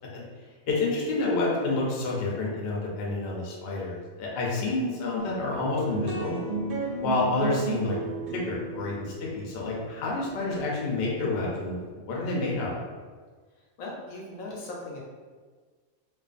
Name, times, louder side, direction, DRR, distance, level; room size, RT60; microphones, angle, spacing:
voice 1, 0.7-6.4 7.0-8.0 8.3-11.8 12.0-12.8, left 2 dB, 60° left, -3 dB, 0.7 m, -29 dB
voice 2, 4.5-4.9 13.8-15.0, left 2 dB, 80° left, -3 dB, 1.0 m, -39 dB
sound 1, 5.2-11.8, right 3 dB, 65° right, 0.5 m, -34 dB
2.4 x 2.4 x 2.4 m, 1.5 s
omnidirectional pair, 1.4 m